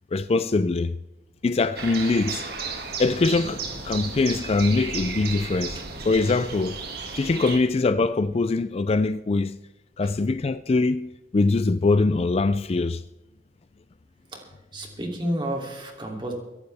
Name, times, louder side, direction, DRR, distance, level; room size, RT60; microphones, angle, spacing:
voice 1, 0.1-1.0 1.4-2.5 3.0-5.8 6.1-6.8 7.1-9.6 10.0-13.0, left 3 dB, 35° left, 0.4 m, -23 dB
sound 1, 1.3-8.9 12.3-12.4 13.4-13.5, equal, 70° left, 5.1 m, -47 dB
sound 2, 1.8-7.6, right 5 dB, 60° right, 2.1 m, -34 dB
voice 2, 14.3-16.3, right 1 dB, 25° right, 2.9 m, -31 dB
23.5 x 11.5 x 3.5 m
head